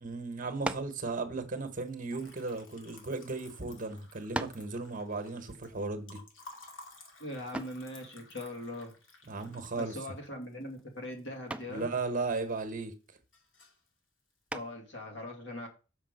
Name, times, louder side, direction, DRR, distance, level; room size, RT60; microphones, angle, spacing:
voice 1, 0.0-6.2 9.3-10.0 11.7-12.9, right 3 dB, 45° right, 1.2 m, -36 dB
sound 1, 0.6-1.0 2.0-3.1 3.8-3.9 4.3-4.7 7.5-7.9 9.8-10.2 10.5-10.9 11.5-11.8 14.5-14.9, right 1 dB, 5° right, 0.4 m, -38 dB
Liquid, 1.6-11.8 12.2-12.8 13.1-13.9, left 3 dB, 85° left, 2.2 m, -55 dB
voice 2, 7.2-9.0 9.8-11.9 14.5-15.7, left 1 dB, 65° left, 2.4 m, -41 dB
6.5 x 5.2 x 6.6 m
head